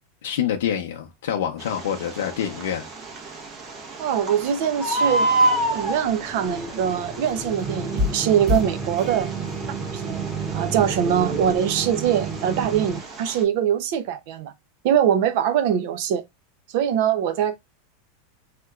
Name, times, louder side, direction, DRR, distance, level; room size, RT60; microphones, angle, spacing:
voice 1, 0.2-2.9, left 9 dB, 80° left, 0.5 m, -26 dB
Bird, 1.6-13.4, right 2 dB, 35° right, 1.0 m, -30 dB
voice 2, 4.0-5.3 5.7-9.3 9.9-10.2 10.5-14.5 14.8-16.2 16.7-17.6, right 9 dB, 60° right, 0.6 m, -23 dB
sound 1, 5.0-11.6, left 1 dB, 10° left, 0.7 m, -37 dB
sound 2, 7.6-13.0, right 2 dB, 15° right, 1.5 m, -29 dB
3.3 x 2.9 x 2.4 m
supercardioid pair, 135°, 0 cm